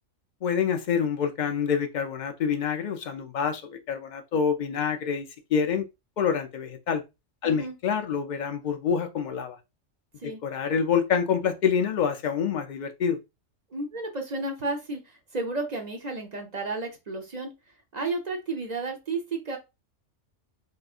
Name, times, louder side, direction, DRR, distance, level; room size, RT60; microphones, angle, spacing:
voice 1, 0.4-5.3 5.5-5.8 6.2-7.0 7.4-9.6 10.4-13.2, left 7 dB, 70° left, 0.4 m, -26 dB
voice 2, 7.4-7.7 10.2-10.4 13.7-17.5 17.9-19.6, right 3 dB, 40° right, 0.7 m, -32 dB
3.6 x 3.0 x 2.4 m
omnidirectional pair, 1.3 m